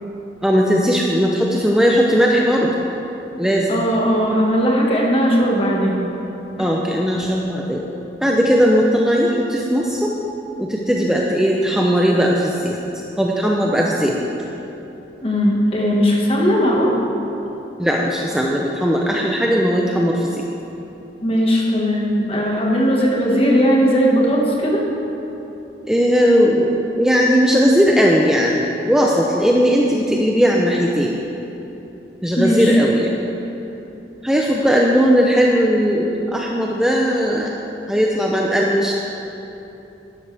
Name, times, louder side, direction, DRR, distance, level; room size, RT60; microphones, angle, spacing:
voice 1, 0.4-2.7 3.4-3.8 6.6-7.8 8.2-10.1 10.6-12.8 13.2-14.2 17.8-20.4 25.9-31.1 32.2-33.3 34.2-37.5 37.9-38.9, equal, 5° right, -2 dB, 0.6 m, -17 dB
voice 2, 3.7-6.0 6.6-6.7 15.2-16.9 21.2-24.8 32.4-32.8, equal, 35° left, -2 dB, 1.6 m, -18 dB
12.5 x 11.0 x 3.4 m, 3.0 s
head